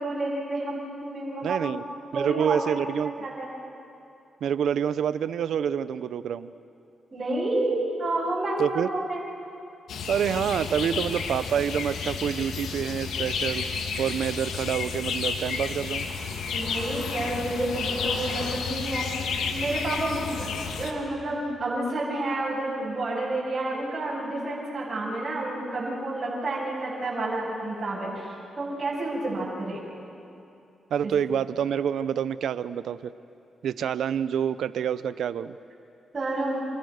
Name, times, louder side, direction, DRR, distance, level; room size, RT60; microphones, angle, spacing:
voice 1, 0.0-1.6 2.1-3.5 7.1-9.2 16.5-19.1 19.5-20.5 20.8-29.8 31.0-31.1 36.1-36.7, right 2 dB, 40° right, -6 dB, 7.8 m, -30 dB
voice 2, 1.4-1.8 2.1-3.1 4.4-6.5 8.6-8.9 10.1-13.7 14.0-16.1 30.9-33.1 33.6-35.6, right 8 dB, 80° right, 14 dB, 0.8 m, -27 dB
sound 1, 9.9-20.9, left 5 dB, 85° left, 2.3 m, -31 dB
28.5 x 28.0 x 6.6 m, 2.7 s
cardioid pair, 70°, 0 cm